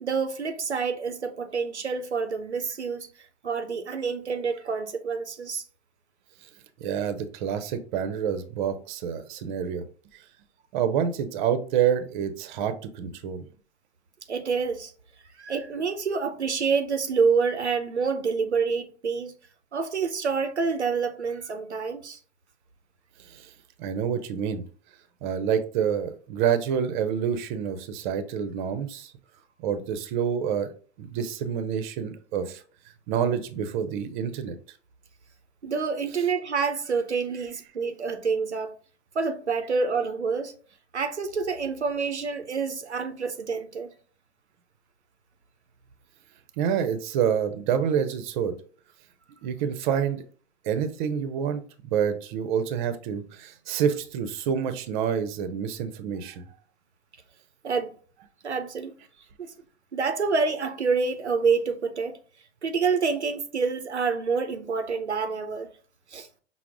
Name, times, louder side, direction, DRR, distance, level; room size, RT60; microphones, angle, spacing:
voice 1, 0.0-3.1 3.4-5.6 14.3-14.9 15.3-19.3 19.7-22.2 35.6-38.7 39.1-40.5 40.9-43.9 57.6-57.9 58.4-58.9 59.4-59.5 59.9-62.2 62.6-65.7 66.1-66.3, right 5 dB, 90° right, 0.5 m, -27 dB
voice 2, 6.8-9.8 10.7-13.4 23.3-23.5 23.8-24.6 25.2-29.1 29.6-30.7 31.0-32.6 33.1-34.6 46.6-48.6 49.4-50.2 50.6-56.5, right 8 dB, 45° right, 0.6 m, -27 dB
5.7 x 2.0 x 3.5 m
figure-of-eight pair, 90°, 33 cm